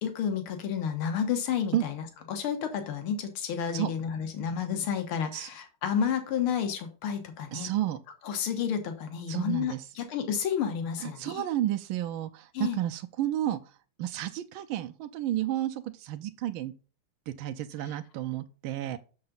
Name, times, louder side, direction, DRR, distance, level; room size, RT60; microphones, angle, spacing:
voice 1, 0.0-7.7 8.2-11.4 12.5-12.8 17.8-18.0, left 7 dB, 85° left, 6 dB, 2.1 m, -31 dB
voice 2, 7.5-8.0 9.3-9.8 11.0-16.7 17.3-19.0, right 13 dB, 80° right, 7 dB, 1.4 m, -31 dB
6.8 x 6.4 x 3.9 m, 0.35 s
omnidirectional pair, 2.3 m